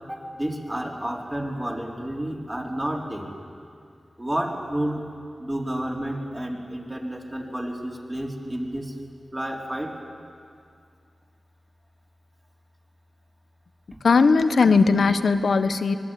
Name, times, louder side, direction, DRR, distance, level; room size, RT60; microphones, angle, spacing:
voice 1, 0.1-3.3 4.2-5.1 5.4-8.9 9.3-10.0, right 1 dB, 20° right, -1 dB, 4.1 m, -30 dB
voice 2, 14.0-16.0, left 4 dB, 80° left, 10 dB, 1.1 m, -18 dB
24.5 x 20.5 x 9.3 m, 2.3 s
cardioid pair, 60°, 0 cm